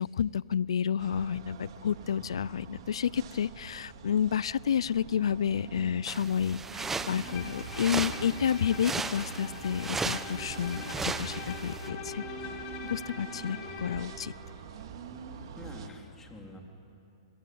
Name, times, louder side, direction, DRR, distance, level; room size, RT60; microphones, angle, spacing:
voice 1, 0.0-12.2 12.8-14.3, left 8 dB, 75° left, 23 dB, 0.5 m, -30 dB
sound 1, 1.0-15.9, right 6 dB, 60° right, 2.3 m, -44 dB
sound 2, 6.1-11.9, right 4 dB, 10° right, 1.0 m, -36 dB
Bowed string instrument, 7.2-14.2, left 6 dB, 40° left, 3.4 m, -43 dB
voice 2, 13.3-13.9 15.6-16.6, left 1 dB, 15° left, 2 dB, 3.3 m, -48 dB
25.5 x 21.0 x 9.4 m, 2.8 s
hypercardioid pair, 130°, 3 cm